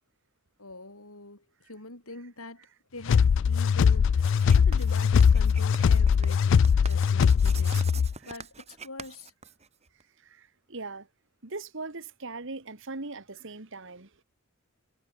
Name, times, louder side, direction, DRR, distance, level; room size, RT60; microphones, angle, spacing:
voice 1, 0.6-2.7 2.9-4.1 4.5-7.9 8.2-9.3, left 2 dB, 75° left, 6.5 m, -44 dB
sound 1, 3.1-8.1, left 6 dB, 60° left, 0.3 m, -21 dB
Writing, 4.2-10.0, right 5 dB, 30° right, 2.1 m, -44 dB
voice 2, 10.2-11.1 11.4-14.1, right 3 dB, 60° right, 1.8 m, -40 dB
head